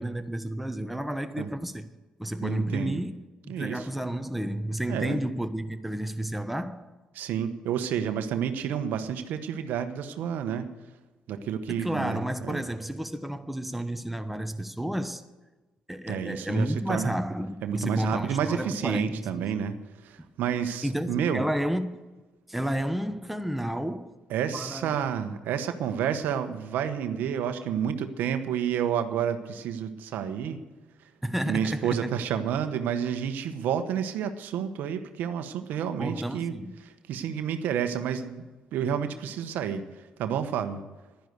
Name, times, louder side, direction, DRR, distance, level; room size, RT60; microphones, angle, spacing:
voice 1, 0.0-1.9 2.2-6.9 11.7-15.2 15.9-19.4 20.8-22.0 22.5-24.1 24.5-25.0 31.2-32.1 36.0-36.7, right 1 dB, 5° right, 1.1 m, -31 dB
voice 2, 2.4-3.0 3.5-3.9 4.9-5.2 7.1-10.7 11.3-12.6 16.1-17.1 17.6-21.4 24.3-30.6 31.0-31.1 31.5-36.5 36.8-38.4 38.7-40.8, right 8 dB, 75° right, 1.1 m, -30 dB
11.5 x 10.5 x 8.0 m
supercardioid pair, 55°, 3 cm